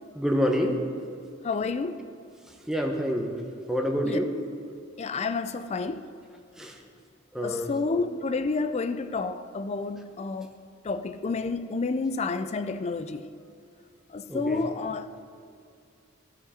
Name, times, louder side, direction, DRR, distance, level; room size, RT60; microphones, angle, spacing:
voice 1, 0.1-0.8 2.7-3.3 3.7-4.3 6.6-6.8 7.3-7.8 14.3-14.6, equal, 5° right, 0.8 m, -27 dB
voice 2, 1.4-2.1 4.0-4.2 5.0-6.1 7.4-10.5 10.8-13.3 14.1-15.2, left 4 dB, 35° left, 0.4 m, -30 dB
15.5 x 5.2 x 4.2 m
head